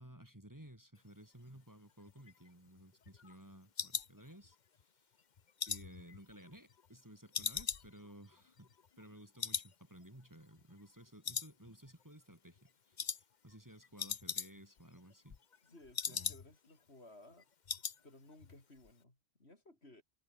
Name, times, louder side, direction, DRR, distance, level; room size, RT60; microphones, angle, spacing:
voice 1, 0.0-5.2 5.7-8.7 9.0-15.4 16.1-16.4, right 1 dB, 15° right, 3.2 m, -56 dB
sound 1, 2.1-4.8 5.2-7.0 7.3-9.1 9.4-9.7 10.0-10.1 10.6-11.0 11.2-12.0 12.3-12.6 13.0-13.2 13.5-13.6 13.8-14.8 15.1-16.7 17.0-17.1 17.4-18.0 18.3-18.6 18.8-18.9, left 6 dB, 45° left, 1.0 m, -41 dB
voice 2, 15.6-17.5 18.0-20.0, left 2 dB, 70° left, 5.8 m, -59 dB
omnidirectional pair, 1.1 m